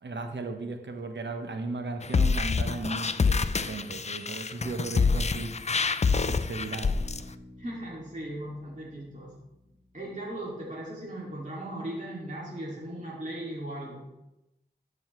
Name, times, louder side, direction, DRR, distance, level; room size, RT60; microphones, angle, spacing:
voice 1, 0.0-7.3, right 3 dB, 80° right, 6 dB, 0.9 m, -36 dB
sound 1, 2.0-7.2, left 4 dB, 40° left, 0.4 m, -26 dB
Bass guitar, 6.9-10.6, left 1 dB, 15° left, 2.3 m, -52 dB
voice 2, 7.6-9.3 9.6-14.1, right 1 dB, 40° right, -5 dB, 2.4 m, -38 dB
13.0 x 5.6 x 3.1 m, 0.93 s
wide cardioid pair, 50°, 18 cm